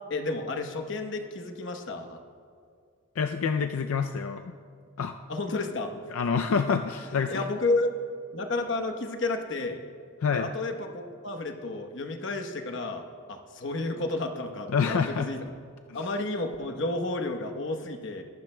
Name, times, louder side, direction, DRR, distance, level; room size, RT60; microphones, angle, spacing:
voice 1, 0.1-2.2 5.3-5.9 7.1-7.9 8.3-9.8 10.3-13.0 13.3-15.4 15.9-18.2, left 2 dB, 60° left, 4 dB, 1.0 m, -31 dB
voice 2, 3.2-4.4 5.0-5.1 6.1-7.4 10.2-10.5 14.7-15.3 15.9-16.0, left 5 dB, 85° left, 6 dB, 0.4 m, -27 dB
22.0 x 12.0 x 2.2 m, 2.2 s
head